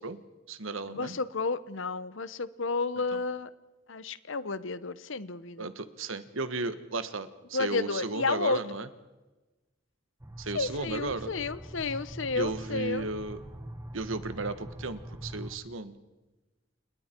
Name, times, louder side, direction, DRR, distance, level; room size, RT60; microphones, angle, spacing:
voice 1, 0.0-1.2 3.1-3.2 5.6-8.9 10.4-11.3 12.3-13.4 13.9-16.0, right 3 dB, 85° right, 11 dB, 1.4 m, -35 dB
voice 2, 0.9-3.5 3.9-5.7 7.5-8.6 10.5-13.1, left 3 dB, 75° left, 15 dB, 1.0 m, -31 dB
sound 1, 10.2-15.6, equal, 15° right, 1.4 m, -43 dB
29.5 x 29.5 x 4.6 m, 1.1 s
head